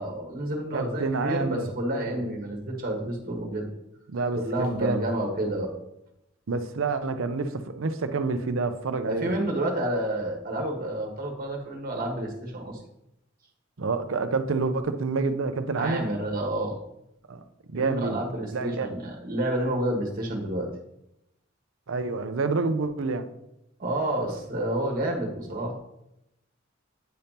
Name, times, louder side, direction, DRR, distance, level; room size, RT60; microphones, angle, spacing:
voice 1, 0.0-3.7 4.4-5.7 9.0-12.8 15.8-16.8 17.7-20.7 23.8-25.8, right 1 dB, 45° right, 1 dB, 1.5 m, -29 dB
voice 2, 0.7-1.7 2.1-2.2 4.1-5.1 6.5-9.3 13.8-16.1 17.3-17.4 17.7-18.2 18.5-18.9 21.9-23.3, right 3 dB, 85° right, 9 dB, 0.6 m, -28 dB
9.1 x 5.2 x 2.9 m, 0.83 s
head